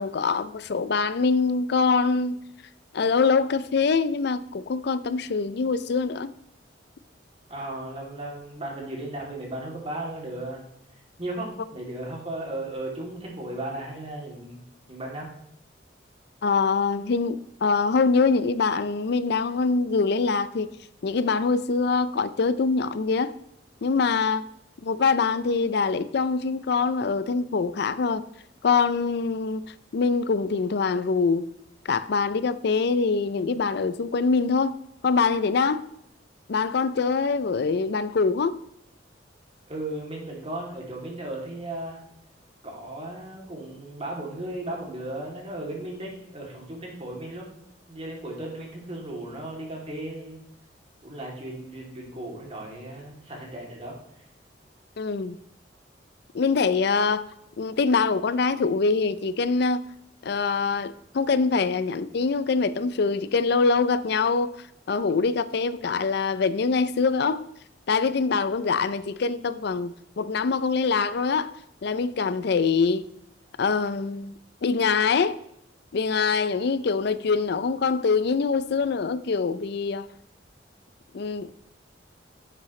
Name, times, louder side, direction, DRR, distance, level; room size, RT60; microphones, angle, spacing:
voice 1, 0.0-2.4 2.9-6.3 16.4-20.7 21.0-23.3 23.8-24.4 24.8-28.2 28.6-29.6 29.9-31.5 31.9-34.8 35.0-35.8 36.5-38.6 55.0-55.4 56.3-57.3 57.6-59.8 60.2-64.6 64.9-67.4 67.9-71.5 71.8-73.1 73.6-74.3 74.6-75.4 75.9-80.1 81.1-81.5, left 4 dB, 60° left, 0.4 m, -24 dB
voice 2, 7.5-10.6 11.2-14.6 14.9-15.3 39.7-42.0 42.6-47.5 47.9-50.4 51.0-54.0, right 1 dB, 35° right, 2.8 m, -35 dB
11.5 x 7.6 x 3.2 m
head